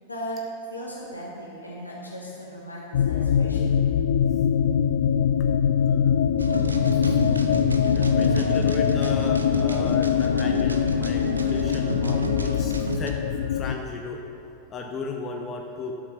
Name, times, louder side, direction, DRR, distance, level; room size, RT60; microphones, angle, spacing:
voice 1, 0.0-3.9, equal, 85° left, -5 dB, 2.8 m, -37 dB
sound 1, 2.9-13.8, left 8 dB, 60° left, 0.4 m, -23 dB
sound 2, 6.4-13.1, right 2 dB, 75° right, 0.7 m, -31 dB
voice 2, 6.9-7.5 7.9-14.2 14.7-15.9, left 3 dB, 25° left, 2 dB, 0.9 m, -36 dB
12.0 x 7.6 x 5.6 m, 2.7 s
figure-of-eight pair, 90°, 0 cm